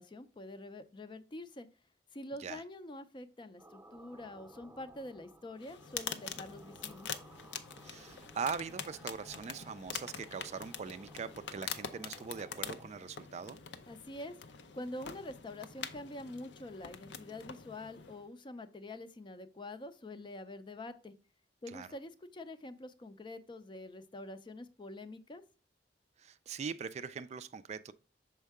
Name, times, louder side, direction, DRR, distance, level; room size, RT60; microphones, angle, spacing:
voice 1, 0.0-1.7 2.1-7.1 13.9-14.4 14.7-21.1 21.6-25.4, left 1 dB, 25° left, 0.5 m, -46 dB
sound 1, 3.6-12.8, right 1 dB, 10° right, 0.7 m, -58 dB
sound 2, 5.6-18.3, left 7 dB, 85° left, 0.6 m, -45 dB
voice 2, 7.8-13.6 21.7-21.9 26.2-27.9, right 6 dB, 40° right, 0.3 m, -41 dB
6.4 x 4.5 x 3.5 m
head